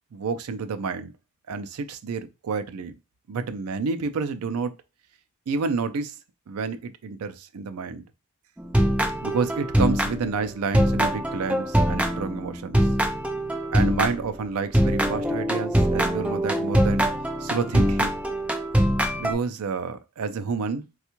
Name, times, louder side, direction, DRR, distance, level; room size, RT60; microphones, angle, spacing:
voice 1, 0.1-1.1 1.5-2.9 3.3-4.7 5.5-6.1 6.5-8.0 9.2-12.8 13.7-17.1 17.4-18.1 19.2-20.8, right 4 dB, 80° right, 0.4 m, -29 dB
sound 1, 8.6-10.5 10.7-14.3 14.7-19.3, equal, 5° right, 0.3 m, -23 dB
3.4 x 2.3 x 2.9 m
head